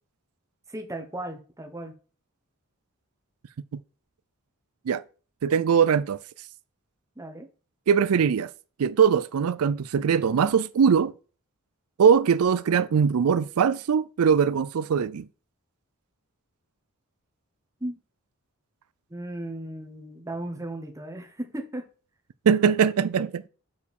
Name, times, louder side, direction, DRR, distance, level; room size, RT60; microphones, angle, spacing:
voice 1, 0.7-1.9 7.2-7.5 17.8-18.0 19.1-21.9, right 1 dB, 15° right, 1.1 m, -36 dB
voice 2, 5.4-6.2 7.9-8.5 8.8-11.1 12.0-15.3 22.5-23.5, right 7 dB, 85° right, 0.4 m, -21 dB
6.5 x 4.6 x 5.4 m
head